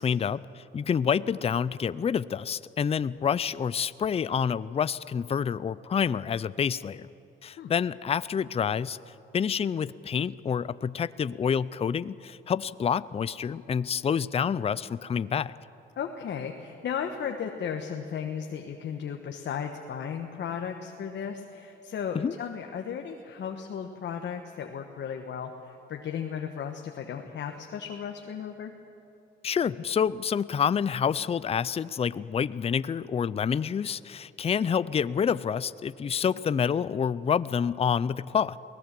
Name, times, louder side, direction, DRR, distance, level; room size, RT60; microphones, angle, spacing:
voice 1, 0.0-7.1 7.4-9.0 9.3-15.5 22.1-22.3 29.4-38.6, left 7 dB, 30° left, 17 dB, 0.5 m, -28 dB
voice 2, 16.0-28.7 36.3-36.4, left 7 dB, 65° left, 4 dB, 1.4 m, -35 dB
23.5 x 18.0 x 7.6 m, 2.9 s
cardioid pair, 90°, 20 cm